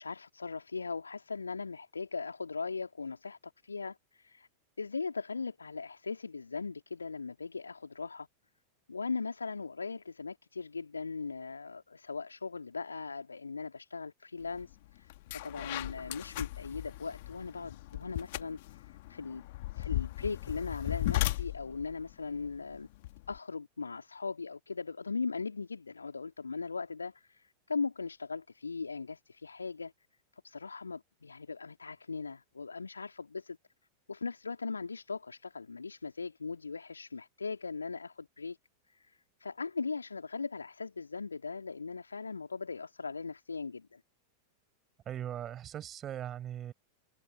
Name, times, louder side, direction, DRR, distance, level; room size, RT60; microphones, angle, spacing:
voice 1, 0.0-4.5 4.8-8.3 8.9-19.4 19.7-22.9 23.3-29.9 30.4-33.6 34.1-38.6 38.9-44.0, left 4 dB, 75° left, 2.7 m, -39 dB
sound 1, 14.6-14.7 15.1-23.4, left 18 dB, 50° left, 2.1 m, -37 dB
voice 2, 45.1-46.7, right 10 dB, 30° right, 6.0 m, -39 dB
figure-of-eight pair, 90°, 0 cm